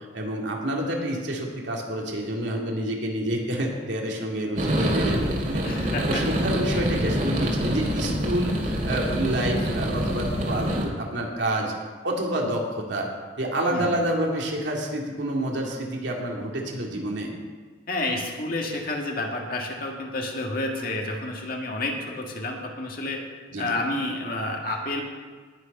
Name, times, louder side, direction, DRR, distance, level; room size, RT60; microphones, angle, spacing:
voice 1, 0.1-11.7 12.0-13.1 13.4-17.3 23.5-23.8, right 1 dB, 80° right, -1 dB, 2.5 m, -28 dB
sound 1, 4.6-10.8, equal, 50° right, 2.5 m, -26 dB
voice 2, 5.6-6.2 6.7-7.2 13.7-14.0 17.9-23.2 23.6-25.0, left 2 dB, 55° left, 1 dB, 1.8 m, -30 dB
19.0 x 6.5 x 5.4 m, 1.5 s
head